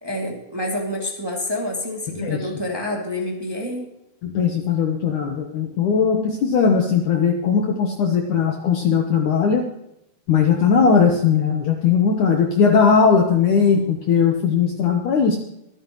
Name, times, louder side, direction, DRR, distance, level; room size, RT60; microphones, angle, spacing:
voice 1, 0.0-3.9, left 1 dB, 10° right, -1 dB, 1.1 m, -28 dB
voice 2, 4.2-9.6 10.3-15.4, left 6 dB, 70° left, 3 dB, 2.0 m, -18 dB
25.0 x 9.1 x 3.1 m, 0.81 s
omnidirectional pair, 4.9 m